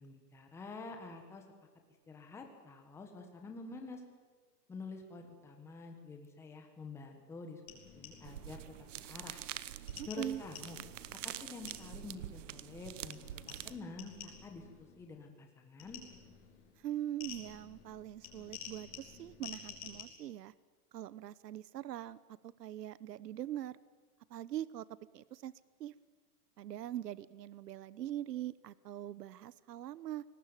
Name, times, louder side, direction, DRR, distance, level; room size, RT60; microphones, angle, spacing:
voice 1, 0.0-1.4 2.1-4.0 4.7-7.6 7.9-8.6 9.0-9.4 10.0-10.8 11.2-16.0, left 3 dB, 5° left, 4 dB, 1.4 m, -48 dB
sound 1, 7.7-9.1 9.9-12.7 13.1-15.3 15.8-20.0, left 7 dB, 45° left, 5.3 m, -52 dB
sound 2, 8.2-13.8, right 12 dB, 50° right, 0.9 m, -46 dB
voice 2, 10.0-10.4 16.8-20.5 20.9-22.2 22.4-23.8 24.3-24.9 25.1-25.5 25.8-25.9 26.6-30.2, right 12 dB, 80° right, 19 dB, 1.0 m, -42 dB
23.0 x 19.0 x 9.0 m, 1.4 s
hypercardioid pair, 170°, 48 cm